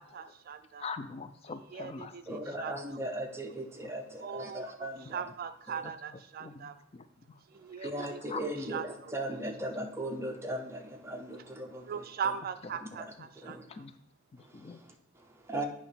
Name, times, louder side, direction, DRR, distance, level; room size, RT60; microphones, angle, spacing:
voice 1, 0.0-0.9 1.5-2.8 4.2-6.8 7.5-8.2 8.6-9.4 11.9-13.9, right 7 dB, 50° right, 10 dB, 0.3 m, -40 dB
voice 2, 0.8-2.1 6.4-7.4 7.7-7.9 8.3-8.4 13.4-14.0 14.3-14.8, left 4 dB, 30° left, 10 dB, 0.3 m, -43 dB
voice 3, 2.3-5.2 5.7-5.8 7.8-12.0 13.4-13.6 14.4-15.7, right 1 dB, 15° right, 3 dB, 0.7 m, -38 dB
8.5 x 3.1 x 5.6 m, 0.76 s
head